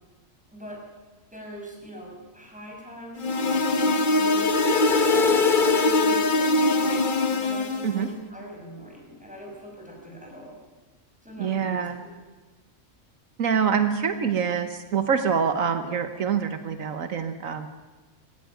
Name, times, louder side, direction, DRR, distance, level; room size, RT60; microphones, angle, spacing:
voice 1, 0.5-0.8 1.3-10.6 11.2-11.9, equal, 5° right, -1 dB, 6.1 m, -42 dB
sound 1, 3.2-8.0, left 3 dB, 40° left, 1.2 m, -22 dB
voice 2, 11.4-12.0 13.4-17.7, right 7 dB, 80° right, 9 dB, 1.5 m, -25 dB
19.0 x 16.0 x 9.2 m, 1.2 s
omnidirectional pair, 1.4 m